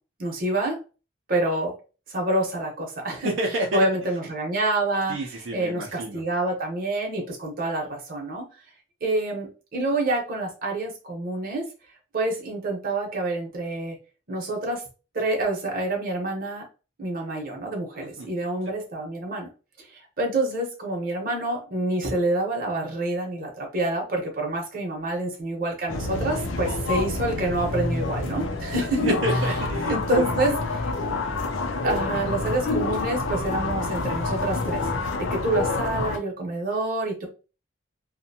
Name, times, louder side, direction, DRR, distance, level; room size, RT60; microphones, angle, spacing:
voice 1, 0.2-0.8 1.3-1.8 2.1-3.3 3.7-5.2 5.5-8.4 9.0-11.7 12.1-14.0 14.3-14.8 15.1-16.7 17.0-19.5 19.8-29.0 29.9-30.5 31.8-34.8 35.2-37.3, right 2 dB, 50° right, 0 dB, 0.8 m, -27 dB
voice 2, 3.1-3.8 5.1-6.2 18.2-18.3 28.7-30.6, right 1 dB, 75° right, -2 dB, 0.5 m, -29 dB
sound 1, 25.9-36.2, left 2 dB, 85° left, 0.5 m, -27 dB
2.6 x 2.1 x 2.7 m, 0.34 s
head